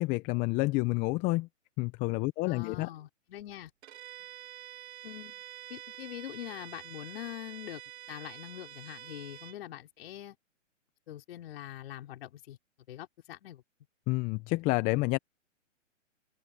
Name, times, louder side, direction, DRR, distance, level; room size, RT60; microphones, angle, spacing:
voice 1, 0.0-1.5 1.8-2.9 14.1-15.2, left 23 dB, 20° left, 0.9 m, -29 dB
voice 2, 2.4-3.7 5.0-5.4 5.7-7.8 8.1-10.4 11.1-12.6 12.9-13.6, left 13 dB, 50° left, 5.3 m, -43 dB
Bowed string instrument, 3.8-9.6, right 11 dB, 55° right, 2.7 m, -47 dB
hypercardioid pair, 140°, 38 cm